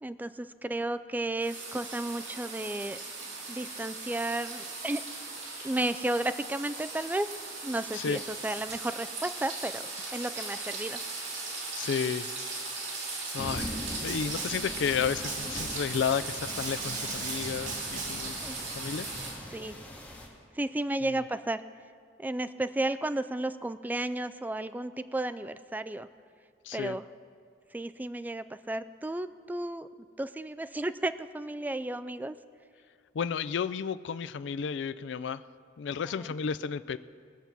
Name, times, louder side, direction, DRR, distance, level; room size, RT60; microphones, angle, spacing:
voice 1, 0.0-3.0 3.5-5.0 5.6-7.3 7.6-9.8 10.1-11.0 11.3-11.4 18.4-18.6 19.5-19.8 20.5-21.6 22.2-26.1 26.7-27.0 27.7-29.9 30.2-32.4 36.2-36.3, right 1 dB, 10° right, 11 dB, 0.3 m, -33 dB
sound 1, 1.4-19.4, right 3 dB, 75° right, 2.7 m, -38 dB
voice 2, 11.8-12.3 13.3-13.7 14.0-19.1 21.0-21.2 26.6-27.0 33.1-35.4 35.8-37.0, left 7 dB, 70° left, 13 dB, 0.4 m, -32 dB
sound 2, 13.4-20.3, equal, 10° left, 1.9 m, -42 dB
Snare drum, 14.1-14.8 15.3-16.0 16.5-18.4, right 4 dB, 45° right, 1.3 m, -39 dB
20.5 x 6.9 x 5.9 m, 2.1 s
head